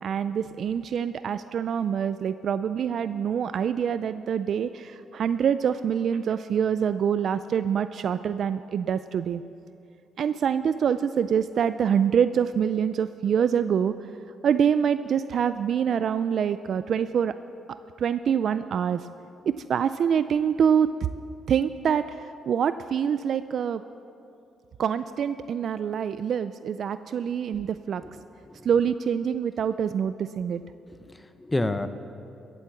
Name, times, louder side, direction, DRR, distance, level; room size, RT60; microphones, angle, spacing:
voice 1, 0.0-9.4 10.2-13.9 14.4-17.4 18.0-19.0 19.5-20.9 21.5-22.2 22.5-23.8 24.8-28.0 28.7-30.6, right 8 dB, 60° right, 12 dB, 0.3 m, -25 dB
voice 2, 28.0-28.6 30.9-31.9, left 2 dB, 15° left, 10 dB, 0.7 m, -30 dB
14.0 x 8.3 x 7.8 m, 2.7 s
cardioid pair, 90°, 0 cm